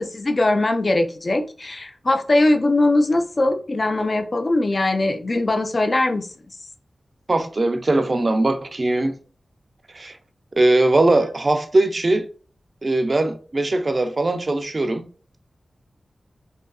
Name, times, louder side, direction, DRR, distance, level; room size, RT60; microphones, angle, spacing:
voice 1, 0.0-6.3, left 2 dB, 40° left, 0.4 m, -20 dB
voice 2, 7.3-9.2 9.9-10.2 10.6-12.3 12.8-15.0, right 2 dB, 40° right, 0.3 m, -20 dB
2.6 x 2.4 x 2.3 m
wide cardioid pair, 85°, 0 cm